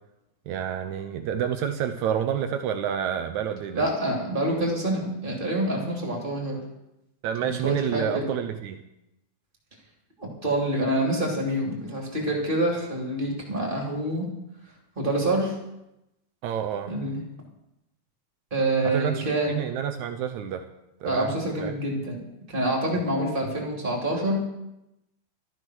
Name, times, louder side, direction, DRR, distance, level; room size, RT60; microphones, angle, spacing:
voice 1, 0.5-3.8 7.2-8.8 16.4-16.9 18.8-20.7 21.0-21.7, right 9 dB, 80° right, 7 dB, 1.7 m, -29 dB
voice 2, 3.7-6.6 7.4-8.2 10.2-14.3 15.0-15.6 16.9-17.2 18.5-19.5 21.0-22.2 22.5-24.4, right 1 dB, 15° right, -1 dB, 2.6 m, -26 dB
13.5 x 11.0 x 6.2 m, 0.89 s
omnidirectional pair, 4.2 m